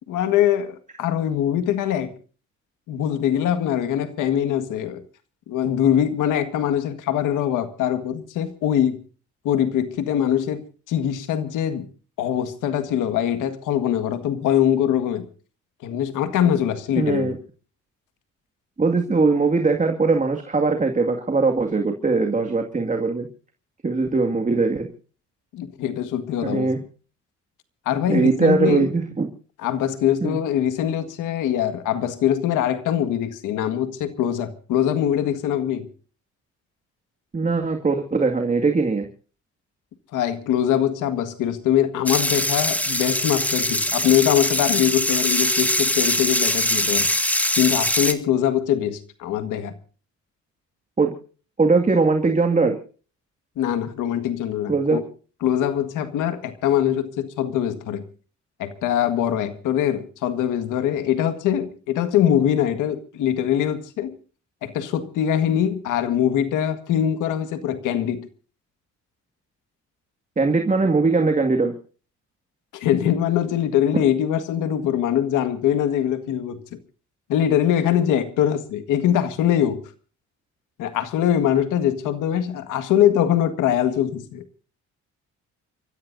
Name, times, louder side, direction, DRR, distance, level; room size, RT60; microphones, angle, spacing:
voice 1, 0.1-2.1 2.9-5.0 5.5-9.0 9.4-11.9 12.2-15.3 15.8-17.4 25.5-26.7 27.9-28.9 29.6-35.9 40.1-47.1 47.5-49.7 53.6-55.0 55.4-58.0 58.6-64.2 64.6-68.3 72.7-76.8 77.3-79.8 80.8-84.4, left 10 dB, 90° left, 1.8 m, -22 dB
voice 2, 17.0-17.4 18.8-23.3 23.8-24.9 26.4-26.8 28.1-29.3 30.2-30.4 37.3-39.1 51.0-51.1 51.6-52.8 54.7-55.0 70.4-71.7 73.9-74.0, right 4 dB, 25° right, 2.2 m, -20 dB
sound 1, 42.1-48.1, left 1 dB, 5° left, 1.9 m, -22 dB
29.5 x 14.5 x 2.7 m
cardioid pair, 90°, 30 cm